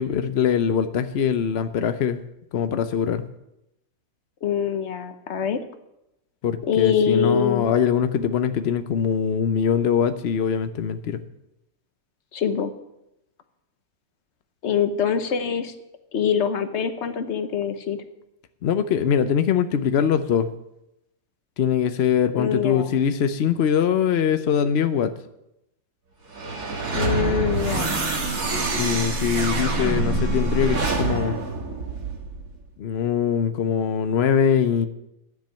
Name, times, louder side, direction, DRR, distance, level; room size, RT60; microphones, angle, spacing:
voice 1, 0.0-2.2 2.5-3.2 6.4-11.2 18.6-20.5 21.6-25.1 28.7-31.4 32.8-34.9, left 8 dB, 85° left, 10 dB, 0.5 m, -22 dB
voice 2, 4.4-5.6 6.7-7.7 12.3-12.7 14.6-15.7 16.1-18.0 22.3-23.0 26.9-28.0, left 7 dB, 50° left, 9 dB, 1.0 m, -24 dB
sound 1, 26.3-32.6, right 3 dB, 50° right, 2.0 m, -25 dB
10.5 x 7.6 x 9.0 m, 0.87 s
omnidirectional pair, 2.0 m